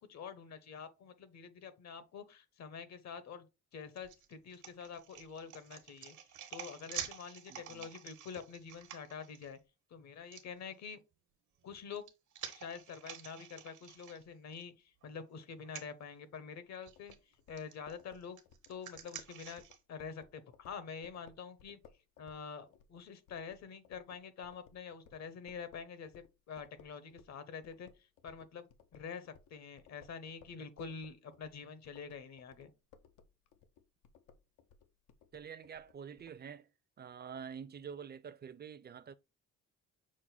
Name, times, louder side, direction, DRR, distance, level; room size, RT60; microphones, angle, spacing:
voice 1, 0.1-3.5 3.7-6.2 6.5-9.6 9.9-11.0 11.6-12.0 12.5-17.2 17.5-18.4 18.7-19.6 19.9-21.8 22.2-32.7, left 6 dB, 65° left, 0.9 m, -47 dB
sound 1, 4.0-9.5 10.3-10.4 11.6-14.6 15.0-15.1 15.6-15.9 16.8-17.2 17.6-19.8, right 9 dB, 75° right, 1.1 m, -48 dB
voice 2, 7.5-7.9 35.3-36.7 37.0-39.1, right 7 dB, 35° right, 0.5 m, -47 dB
sound 2, 16.9-27.4 27.6-36.4, left 7 dB, 85° left, 0.6 m, -62 dB
6.2 x 2.1 x 4.0 m
cardioid pair, 90°, 30 cm